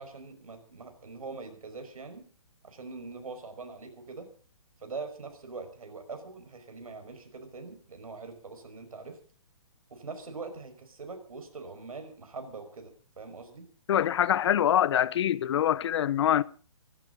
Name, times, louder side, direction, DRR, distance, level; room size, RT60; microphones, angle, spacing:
voice 1, 0.0-2.3 2.6-4.3 4.8-9.2 9.9-13.7, right 4 dB, 75° right, 5.5 m, -43 dB
voice 2, 13.9-16.4, left 10 dB, 50° left, 0.8 m, -24 dB
25.0 x 12.5 x 4.0 m
hypercardioid pair, 140°, 18 cm